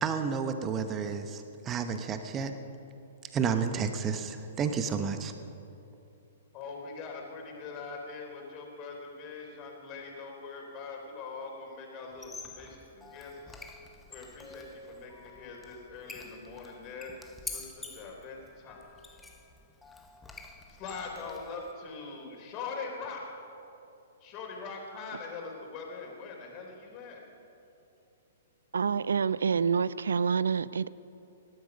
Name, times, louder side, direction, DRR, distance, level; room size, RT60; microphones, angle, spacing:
voice 1, 0.0-2.5 3.3-5.3, right 6 dB, 25° right, 1.1 m, -31 dB
voice 2, 6.5-13.6 14.1-17.1 17.4-18.8 20.7-23.4 24.2-27.2, left 4 dB, 35° left, 3.8 m, -42 dB
Squeak, 12.1-21.7, left 3 dB, 10° left, 1.2 m, -47 dB
voice 3, 28.7-30.9, right 6 dB, 70° right, 0.4 m, -27 dB
18.5 x 12.5 x 6.2 m
figure-of-eight pair, 115°, 0 cm